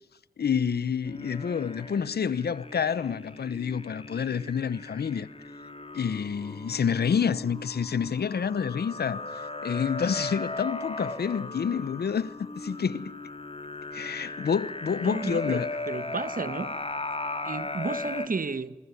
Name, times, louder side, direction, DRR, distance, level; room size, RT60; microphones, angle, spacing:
voice 1, 0.4-5.3 5.9-13.1 13.9-15.7, left 7 dB, 80° left, 0.9 m, -28 dB
sound 1, 1.0-18.3, left 2 dB, 35° left, 2.9 m, -37 dB
voice 2, 15.0-16.7 17.4-18.8, right 4 dB, 60° right, 1.5 m, -33 dB
24.0 x 21.5 x 9.8 m
cardioid pair, 45°, 16 cm